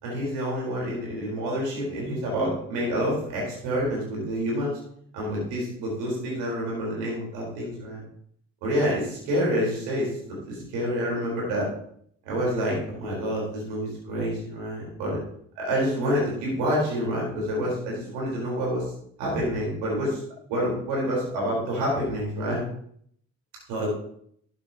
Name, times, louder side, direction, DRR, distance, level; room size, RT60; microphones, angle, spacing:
voice 1, 0.0-4.8 5.1-8.0 8.6-11.7 12.2-15.2 15.6-18.9 19.2-20.2 20.5-22.6 23.7-23.9, equal, 70° right, -3 dB, 4.5 m, -28 dB
12.5 x 9.4 x 3.0 m, 0.65 s
figure-of-eight pair, 45°, 41 cm